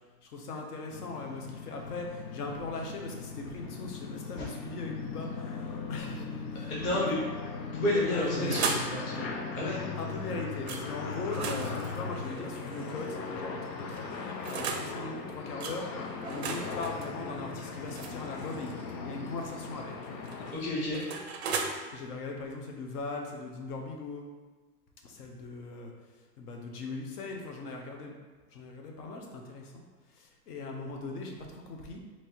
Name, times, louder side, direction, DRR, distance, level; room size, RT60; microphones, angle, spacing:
voice 1, 0.2-7.0 8.1-8.8 10.0-18.7 19.0-20.2 21.9-24.3 25.0-25.9 26.4-28.2 28.5-29.8 30.1-32.0, left 3 dB, 65° left, 1 dB, 0.9 m, -39 dB
sound 1, 0.9-20.5, left 4 dB, 90° left, 0.7 m, -39 dB
voice 2, 6.7-7.2 7.7-8.8 9.1-9.8 20.5-21.0, left 1 dB, 15° left, -6 dB, 0.6 m, -30 dB
sound 2, 8.0-9.0 10.7-10.8 11.2-13.1 13.9-14.9 15.6-15.8 16.2-18.9 20.0-21.7, right 5 dB, 45° right, 0.4 m, -37 dB
3.2 x 3.0 x 4.3 m, 1.3 s
hypercardioid pair, 150°, 50 cm